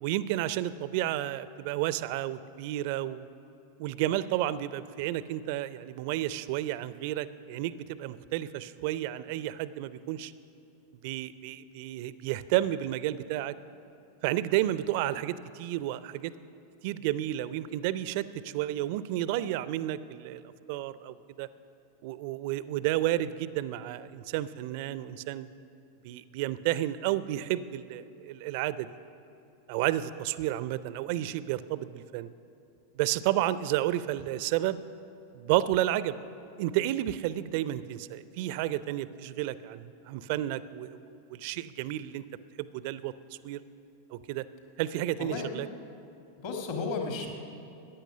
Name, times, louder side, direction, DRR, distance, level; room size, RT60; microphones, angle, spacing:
voice 1, 0.0-3.3 3.8-10.3 11.0-13.5 14.2-16.3 16.8-20.4 20.7-21.5 22.0-25.5 26.0-28.9 29.7-32.3 33.0-34.8 35.3-36.2 36.6-42.2 42.6-43.1 43.4-43.6 44.1-44.5 44.8-45.7, right 14 dB, 45° right, 16 dB, 0.4 m, -31 dB
voice 2, 45.2-45.5 46.4-47.3, left 4 dB, 50° left, 2 dB, 1.8 m, -33 dB
14.5 x 10.0 x 6.6 m, 2.7 s
figure-of-eight pair, 90°, 0 cm